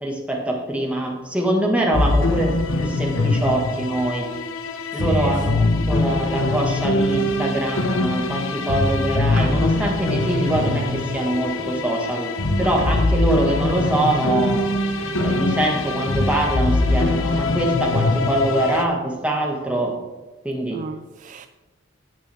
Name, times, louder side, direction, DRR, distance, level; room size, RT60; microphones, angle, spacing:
voice 1, 0.0-4.3 4.9-12.3 12.6-14.6 15.2-19.9 20.4-20.8, right 1 dB, 5° right, 1.8 m, -24 dB
sound 1, 1.9-18.8, left 2 dB, 85° left, 1.0 m, -22 dB
voice 2, 5.0-5.4 20.7-21.5, right 4 dB, 40° right, 0.3 m, -32 dB
sound 2, 9.3-18.4, equal, 60° right, 2.4 m, -39 dB
17.5 x 6.0 x 3.6 m
head